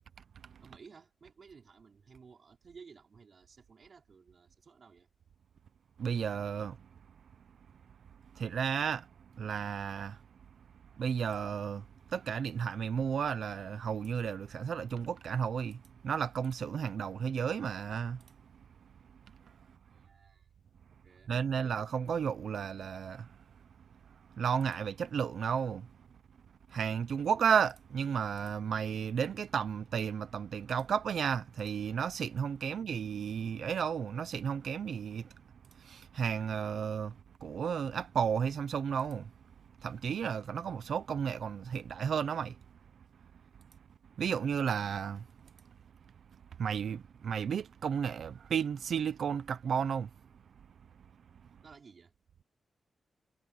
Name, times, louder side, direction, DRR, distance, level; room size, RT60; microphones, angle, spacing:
voice 1, 0.6-5.1 19.9-20.5 21.0-21.7 51.6-52.1, right 5 dB, 45° right, 5.6 m, -56 dB
voice 2, 6.0-6.8 8.3-9.1 9.3-10.2 11.0-18.2 21.3-23.4 24.4-25.9 26.7-35.3 35.7-39.3 39.8-42.6 44.2-45.3 46.6-50.1, right 7 dB, 70° right, 0.7 m, -33 dB
wide cardioid pair, 160°, 0 cm